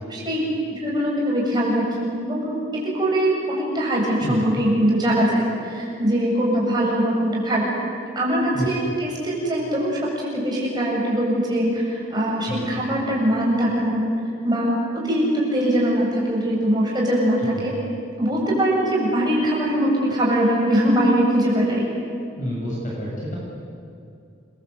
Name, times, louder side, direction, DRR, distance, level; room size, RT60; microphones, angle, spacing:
voice 1, 0.0-7.7 8.1-14.2 14.4-17.7 18.2-21.9, right 1 dB, 20° right, -4 dB, 7.8 m, -22 dB
voice 2, 12.5-12.8 17.4-17.6 22.4-23.4, equal, 40° left, -4 dB, 7.4 m, -29 dB
29.0 x 23.5 x 8.3 m, 2.5 s
head